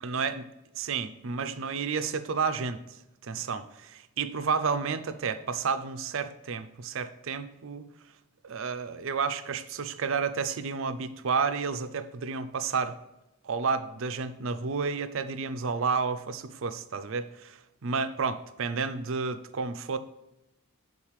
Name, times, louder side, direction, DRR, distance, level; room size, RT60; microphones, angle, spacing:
voice 1, 0.0-0.5 0.8-2.8 3.2-7.8 8.4-13.0 13.4-20.0, right 5 dB, 60° right, 10 dB, 0.5 m, -31 dB
7.4 x 3.9 x 4.7 m, 0.92 s
head